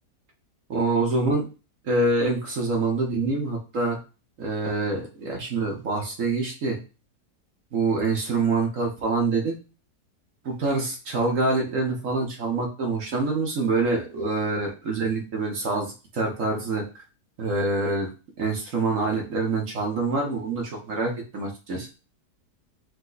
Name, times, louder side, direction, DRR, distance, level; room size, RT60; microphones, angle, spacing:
voice 1, 0.7-1.5 1.8-4.0 4.4-6.8 7.7-9.6 10.4-16.8 17.4-18.1 18.4-21.9, right 3 dB, 55° right, 0 dB, 1.4 m, -26 dB
5.3 x 2.3 x 3.9 m, 0.32 s
omnidirectional pair, 1.7 m